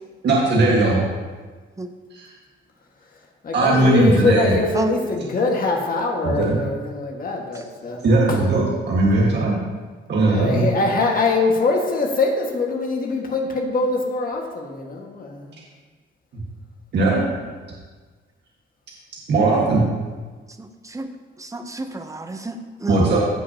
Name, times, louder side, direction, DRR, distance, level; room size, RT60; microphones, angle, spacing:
voice 1, 0.2-1.0 2.1-2.3 3.5-4.6 6.2-6.6 8.0-9.6 10.1-10.6 16.9-17.3 19.3-19.8 22.9-23.2, right 2 dB, 60° right, -4 dB, 1.8 m, -18 dB
voice 2, 3.4-8.0 8.3-8.4 10.2-15.6, left 3 dB, 45° left, 0 dB, 1.8 m, -23 dB
voice 3, 20.6-21.1 21.4-23.0, right 2 dB, 15° right, 6 dB, 0.8 m, -30 dB
15.5 x 5.6 x 2.9 m, 1.4 s
cardioid pair, 90°, 20 cm